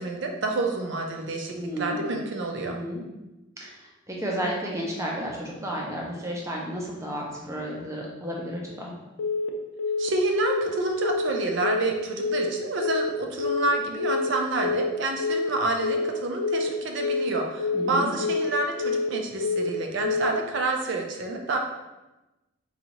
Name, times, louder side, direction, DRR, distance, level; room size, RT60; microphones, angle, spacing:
voice 1, 0.0-2.8 10.0-21.6, right 2 dB, 60° right, 3 dB, 0.5 m, -28 dB
voice 2, 1.5-2.0 2.6-3.0 3.6-8.9 17.7-18.1, equal, 15° right, -2 dB, 0.5 m, -32 dB
Telephone, 9.2-9.5 9.8-10.1 10.4-10.7 11.0-11.3 11.6-11.9 12.2-12.5 12.8-13.1 13.4-13.7 14.0-14.3 14.6-14.9 15.2-15.5 15.8-16.1 16.4-16.7 17.0-17.3 17.6-17.9 18.2-18.5 18.8-19.1 19.4-19.7 20.0-20.3, left 4 dB, 85° left, 0.5 m, -27 dB
4.0 x 2.4 x 2.8 m, 1.0 s
head